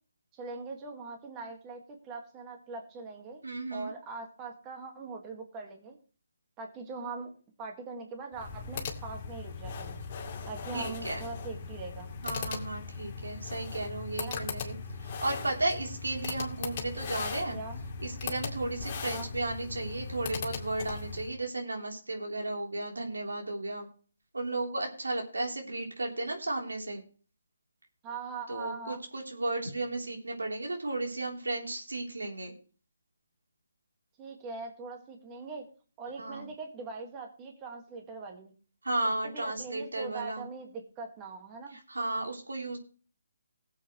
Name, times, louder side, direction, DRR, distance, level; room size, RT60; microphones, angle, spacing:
voice 1, 0.3-3.4 3.7-6.0 6.6-7.3 7.6-10.0 10.5-12.1 14.2-14.4 17.5-17.8 19.0-19.3 28.0-29.0 34.2-35.7 36.0-38.5 39.2-41.8, right 4 dB, 20° right, 2 dB, 1.9 m, -42 dB
voice 2, 3.4-3.9 10.7-11.2 12.2-14.7 15.0-17.6 18.0-23.9 24.3-27.0 28.5-32.5 36.2-36.5 38.8-40.4 41.9-42.8, right 2 dB, 80° right, 1 dB, 3.4 m, -34 dB
sound 1, 8.3-21.3, left 5 dB, 30° left, 2.2 m, -38 dB
19.5 x 7.9 x 3.1 m, 0.40 s
figure-of-eight pair, 145°, 0 cm